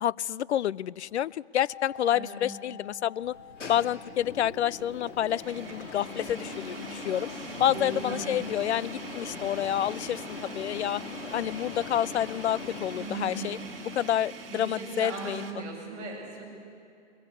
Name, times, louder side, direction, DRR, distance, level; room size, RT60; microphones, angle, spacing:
voice 1, 0.0-3.4 3.7-7.3 7.6-11.0 11.3-13.6 14.0-15.4, left 11 dB, 70° left, 23 dB, 0.5 m, -29 dB
sound 1, 1.7-11.5 11.7-11.8, left 7 dB, 25° left, 3.2 m, -51 dB
sound 2, 2.0-2.1 2.6-2.7 4.7-15.5, right 5 dB, 50° right, 2.0 m, -45 dB
voice 2, 2.1-2.5 7.5-8.4 12.9-13.6 14.5-16.5, right 2 dB, 20° right, -6 dB, 6.6 m, -38 dB
sound 3, 3.2-14.8, left 3 dB, 85° left, 3.4 m, -41 dB
21.5 x 21.0 x 8.3 m, 2.3 s
hypercardioid pair, 170°, 35 cm